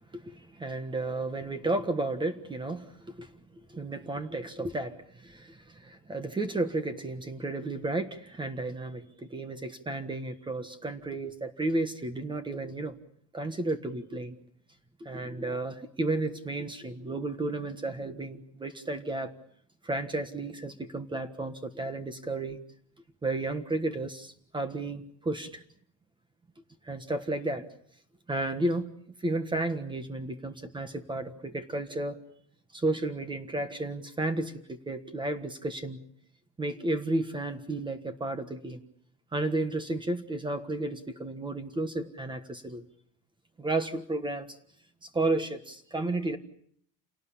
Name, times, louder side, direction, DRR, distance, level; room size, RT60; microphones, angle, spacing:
voice 1, 0.1-3.3 3.7-12.9 13.3-14.3 15.0-19.3 19.8-22.6 23.2-25.6 26.8-27.7 28.3-28.9 29.2-32.2 32.7-36.0 36.6-38.8 39.3-42.8 43.6-44.6 45.0-46.4, right 2 dB, 15° right, 9 dB, 1.4 m, -32 dB
28.5 x 18.5 x 8.5 m, 0.66 s
cardioid pair, 165°, 32 cm